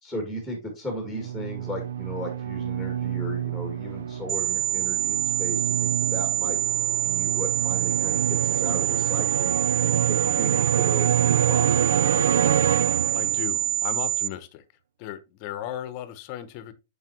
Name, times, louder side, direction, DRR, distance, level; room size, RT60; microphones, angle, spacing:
voice 1, 0.0-6.6 7.0-11.7 11.9-12.5, equal, ahead, 2.1 m, -36 dB
sound 1, 1.0-13.7, right 9 dB, 75° right, 0.4 m, -27 dB
sound 2, 4.3-14.3, right 12 dB, 30° right, 0.6 m, -26 dB
voice 2, 13.1-14.6 15.0-16.7, left 11 dB, 40° left, 1.0 m, -36 dB
7.4 x 5.6 x 2.9 m
hypercardioid pair, 150°, 0 cm